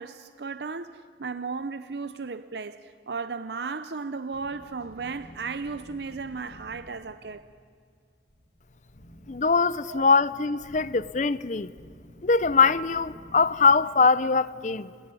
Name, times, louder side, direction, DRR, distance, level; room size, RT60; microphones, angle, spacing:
voice 1, 0.0-7.4 9.9-10.0, right 4 dB, 70° right, 0.6 m, -35 dB
sound 1, 4.3-13.8, equal, 70° left, 4.8 m, -51 dB
voice 2, 9.3-11.7 12.2-14.9, left 4 dB, 45° left, 0.6 m, -22 dB
29.5 x 16.5 x 9.8 m
head